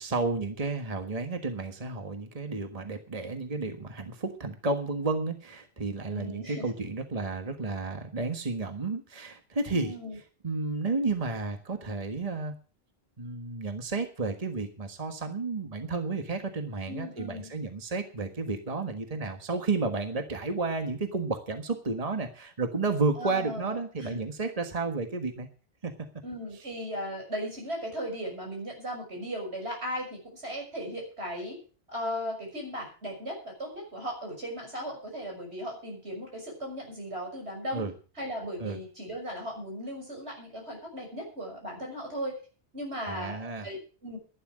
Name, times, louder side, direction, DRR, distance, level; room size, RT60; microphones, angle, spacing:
voice 1, 0.0-9.9 10.4-12.5 13.2-25.5 25.8-25.9 37.7-37.9 38.6-38.8 43.1-43.7, right 3 dB, 35° right, 6 dB, 1.6 m, -32 dB
voice 2, 6.1-6.7 9.7-10.2 16.9-17.5 23.2-24.2 26.2-31.6 31.9-37.9 38.2-42.4 42.7-44.2, equal, 90° right, 0 dB, 6.5 m, -37 dB
11.5 x 11.5 x 6.3 m, 0.37 s
omnidirectional pair, 1.1 m